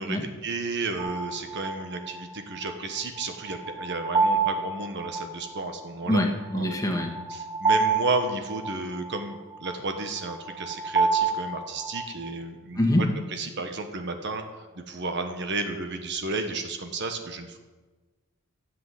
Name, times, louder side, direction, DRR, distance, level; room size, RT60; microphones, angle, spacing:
voice 1, 0.0-6.2 6.5-6.8 7.3-14.4 14.9-17.6, right 3 dB, 55° right, 6 dB, 1.3 m, -32 dB
sound 1, 1.0-12.3, right 4 dB, 25° right, 1.6 m, -29 dB
voice 2, 6.1-7.1 12.8-13.1, left 1 dB, 15° left, 2 dB, 1.6 m, -24 dB
13.5 x 8.1 x 7.7 m, 1.3 s
head